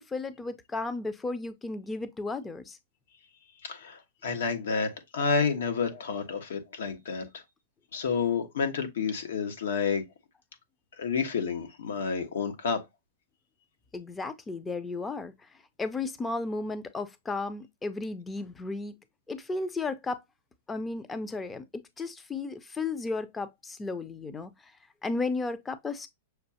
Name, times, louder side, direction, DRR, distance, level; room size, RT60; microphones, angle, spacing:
voice 1, 0.0-2.8 13.9-15.5 15.8-18.9 19.3-20.2 20.7-24.7 25.0-26.1, left 3 dB, 10° left, 0.5 m, -34 dB
voice 2, 3.6-7.4 7.9-10.0 11.0-12.8, left 5 dB, 85° left, 1.3 m, -30 dB
6.4 x 2.4 x 2.8 m
supercardioid pair, 150°, 0 cm